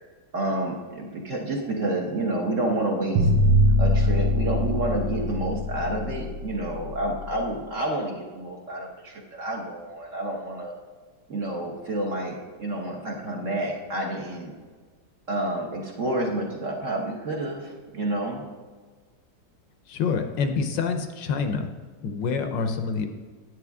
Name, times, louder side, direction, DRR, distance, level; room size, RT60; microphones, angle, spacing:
voice 1, 0.3-3.3 3.8-10.7 11.3-14.5 15.3-18.4, right 1 dB, 45° right, 0 dB, 1.3 m, -29 dB
sound 1, 3.2-7.3, left 1 dB, 80° right, 1.7 m, -22 dB
voice 2, 19.9-21.7 22.0-23.1, left 5 dB, 75° left, 7 dB, 1.3 m, -26 dB
9.5 x 8.9 x 3.5 m, 1.5 s
omnidirectional pair, 2.1 m